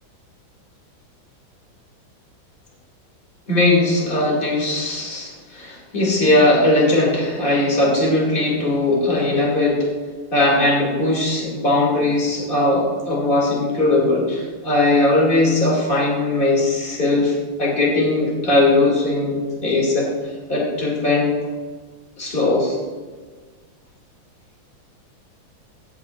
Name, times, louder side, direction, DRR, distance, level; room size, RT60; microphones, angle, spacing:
voice 1, 3.5-9.9 10.3-20.1 20.5-21.4 22.2-22.8, left 2 dB, 25° left, -3 dB, 2.3 m, -19 dB
15.0 x 7.8 x 2.4 m, 1.4 s
omnidirectional pair, 2.2 m